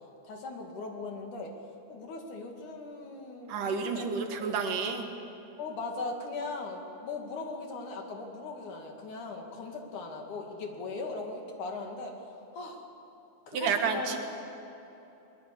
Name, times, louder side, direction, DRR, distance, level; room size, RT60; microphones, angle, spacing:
voice 1, 0.2-1.5 1.9-4.1 4.4-4.5 5.6-12.9 13.5-14.2, left 3 dB, 70° left, 2 dB, 3.8 m, -39 dB
voice 2, 3.5-5.1 13.5-14.2, right 5 dB, 80° right, 5 dB, 3.4 m, -30 dB
22.0 x 21.0 x 8.5 m, 2.9 s
omnidirectional pair, 3.7 m